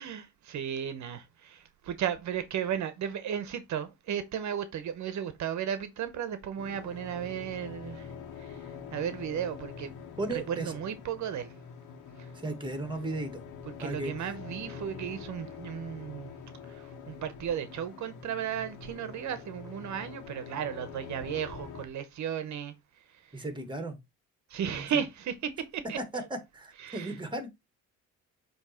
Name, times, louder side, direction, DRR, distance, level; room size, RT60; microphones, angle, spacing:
voice 1, 0.0-9.9 10.5-11.5 12.2-12.3 13.7-16.4 16.6-23.4 24.5-26.3 26.8-27.2, right 9 dB, 70° right, 1.0 m, -35 dB
sound 1, 6.6-21.9, left 6 dB, 85° left, 1.3 m, -45 dB
voice 2, 10.2-10.8 12.4-13.4 13.8-14.1 23.3-24.0 24.7-24.8 26.1-27.5, right 2 dB, 15° right, 1.8 m, -35 dB
7.4 x 3.1 x 4.3 m
cardioid pair, 90°, 30 cm